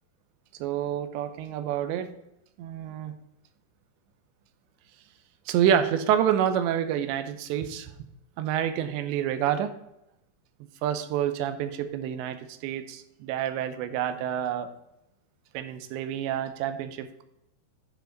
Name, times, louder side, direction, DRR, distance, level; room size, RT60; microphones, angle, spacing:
voice 1, 0.6-2.1 2.6-3.1 5.5-7.9 8.4-9.7 10.8-14.7 15.5-17.2, right 10 dB, 80° right, 9 dB, 2.8 m, -28 dB
11.5 x 5.1 x 3.9 m, 0.83 s
omnidirectional pair, 5.2 m